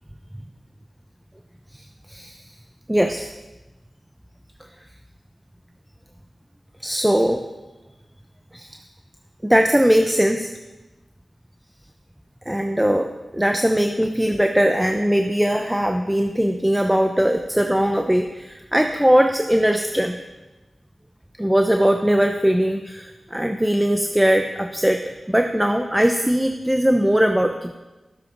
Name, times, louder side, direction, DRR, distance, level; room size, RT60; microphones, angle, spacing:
voice 1, 1.7-2.4 2.9-3.3 6.8-7.4 8.5-8.7 9.4-10.5 12.5-20.2 21.4-27.8, equal, 10° right, 5 dB, 0.7 m, -20 dB
13.5 x 7.5 x 5.3 m, 1.1 s
cardioid pair, 55°, 0 cm